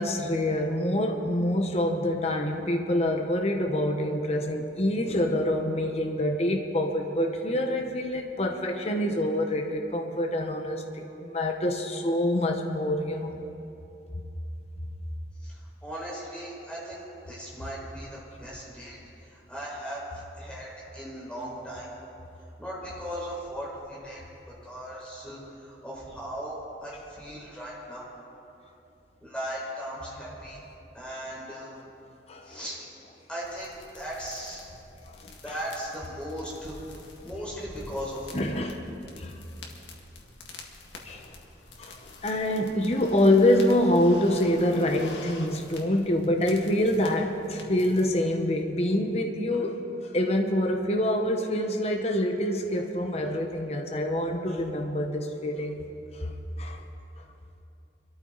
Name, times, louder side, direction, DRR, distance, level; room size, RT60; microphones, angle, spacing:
voice 1, 0.0-13.4 32.3-32.6 35.1-35.6 38.3-38.9 39.2-39.3 41.0-41.3 41.8-55.8 56.1-56.3 56.6-56.8, left 1 dB, 35° left, 3 dB, 1.0 m, -26 dB
voice 2, 15.4-19.0 19.3-21.9 22.6-24.2 24.6-28.1 29.2-30.6 30.9-31.8 32.4-32.8 33.3-34.6 35.4-37.0 37.2-38.4, equal, 5° left, -6 dB, 4.6 m, -38 dB
sound 1, 33.4-48.1, left 3 dB, 90° left, 1.9 m, -49 dB
24.5 x 13.5 x 4.0 m, 2.8 s
head